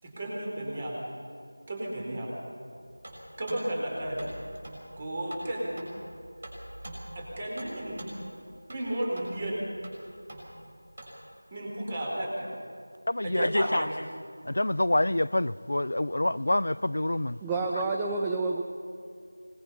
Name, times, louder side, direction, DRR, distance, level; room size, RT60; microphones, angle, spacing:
voice 1, 0.0-1.0 1.7-2.3 3.4-4.3 5.0-5.8 7.1-8.1 8.7-9.6 11.5-12.5 13.2-13.9, right 1 dB, 25° right, 4.4 m, -33 dB
sound 1, 2.8-11.3, right 1 dB, 40° right, 5.8 m, -46 dB
voice 2, 13.1-13.9 14.5-17.7, left 1 dB, 65° left, 0.4 m, -27 dB
voice 3, 17.4-18.6, right 3 dB, 5° right, 0.6 m, -29 dB
25.0 x 20.0 x 5.6 m
figure-of-eight pair, 170°, 0 cm